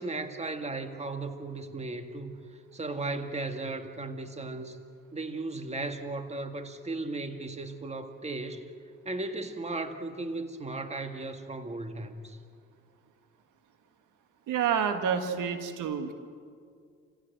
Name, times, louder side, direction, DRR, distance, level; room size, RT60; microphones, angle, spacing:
voice 1, 0.0-2.3 2.7-4.8 5.1-8.7 9.1-12.4, right 2 dB, 20° right, 7 dB, 1.8 m, -36 dB
voice 2, 14.5-16.1, right 7 dB, 80° right, 7 dB, 1.8 m, -28 dB
28.5 x 16.0 x 7.9 m, 2.2 s
cardioid pair, 90°, 30 cm